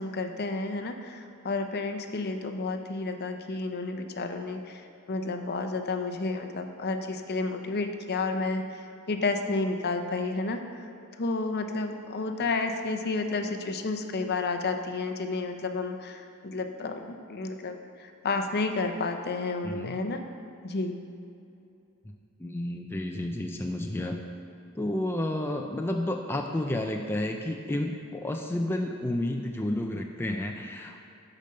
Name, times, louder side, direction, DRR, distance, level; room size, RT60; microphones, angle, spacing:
voice 1, 0.0-10.9 11.2-20.2 20.6-21.0, left 3 dB, 45° left, 6 dB, 0.7 m, -31 dB
voice 2, 19.6-20.0 22.4-24.2 24.7-31.0, left 1 dB, 10° left, 2 dB, 0.4 m, -31 dB
10.5 x 5.2 x 6.7 m, 2.7 s
head